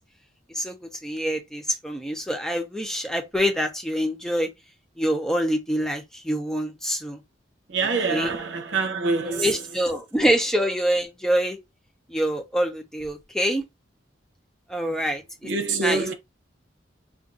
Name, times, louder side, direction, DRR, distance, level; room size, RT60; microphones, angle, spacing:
voice 1, 0.5-4.5 5.0-7.2 8.1-8.3 9.2-11.6 12.1-13.6 14.7-15.5 15.8-16.1, equal, 5° left, 0.6 m, -25 dB
voice 2, 7.7-9.5 14.8-14.9 15.4-16.1, right 4 dB, 80° right, 0.7 m, -26 dB
2.5 x 2.4 x 3.7 m
head